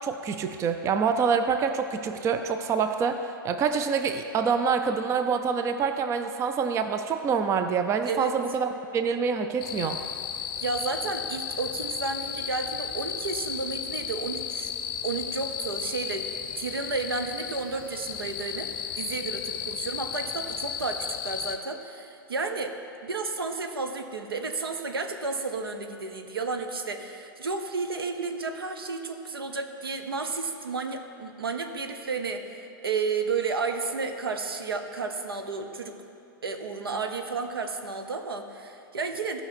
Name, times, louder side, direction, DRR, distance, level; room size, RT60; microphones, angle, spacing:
voice 1, 0.0-10.0, right 6 dB, 25° right, 7 dB, 0.5 m, -26 dB
sound 1, 9.6-21.6, left 8 dB, 35° left, 0.7 m, -34 dB
voice 2, 10.6-14.7 15.0-16.2 16.6-22.7 23.0-35.9 36.4-39.4, right 4 dB, 80° right, 6 dB, 0.8 m, -32 dB
14.5 x 5.3 x 4.3 m, 2.7 s
hypercardioid pair, 105°, 12 cm